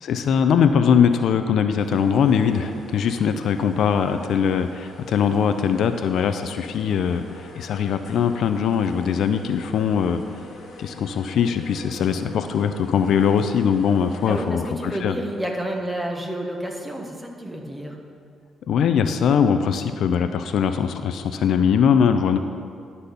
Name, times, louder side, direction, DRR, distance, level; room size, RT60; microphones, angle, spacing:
voice 1, 0.0-10.2 10.8-15.1 18.7-22.4, left 7 dB, 70° left, 8 dB, 0.5 m, -21 dB
sound 1, 1.8-14.5, left 2 dB, 55° left, 1.5 m, -44 dB
voice 2, 14.3-18.0, right 1 dB, 10° right, 1 dB, 1.3 m, -30 dB
11.5 x 4.2 x 6.8 m, 2.3 s
cardioid pair, 90°, 0 cm